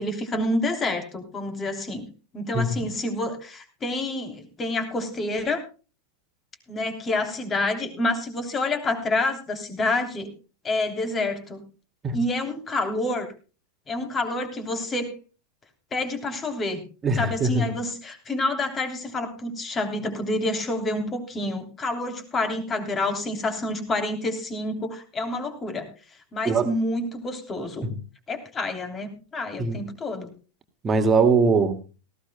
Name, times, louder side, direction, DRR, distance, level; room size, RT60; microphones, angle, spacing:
voice 1, 0.0-2.1 2.3-5.6 6.7-10.3 10.6-11.6 12.1-13.3 13.9-15.1 15.9-16.9 17.2-25.9 26.3-27.9 28.3-30.3, left 2 dB, 20° left, 6 dB, 3.2 m, -28 dB
voice 2, 2.5-2.9 12.0-12.2 17.0-17.7 26.4-26.7 27.8-28.0 29.6-29.8 30.8-31.8, right 4 dB, 20° right, 8 dB, 2.1 m, -22 dB
18.5 x 16.0 x 2.2 m, 0.34 s
figure-of-eight pair, 90°, 0 cm